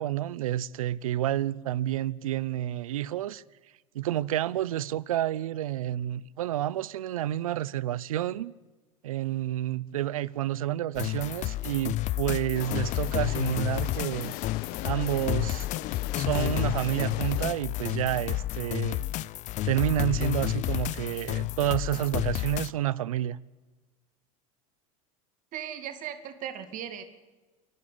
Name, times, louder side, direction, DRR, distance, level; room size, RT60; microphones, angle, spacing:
voice 1, 0.0-3.4 3.9-8.5 9.0-14.3 14.8-15.7 16.2-19.0 19.6-23.4, right 13 dB, 90° right, 0.7 m, -29 dB
sound 1, 10.9-22.7, left 15 dB, 45° left, 0.6 m, -31 dB
sound 2, 12.5-17.5, left 16 dB, 60° left, 1.2 m, -39 dB
voice 2, 25.5-27.0, right 9 dB, 50° right, 2.4 m, -37 dB
28.0 x 12.0 x 8.5 m
hypercardioid pair, 100°, 17 cm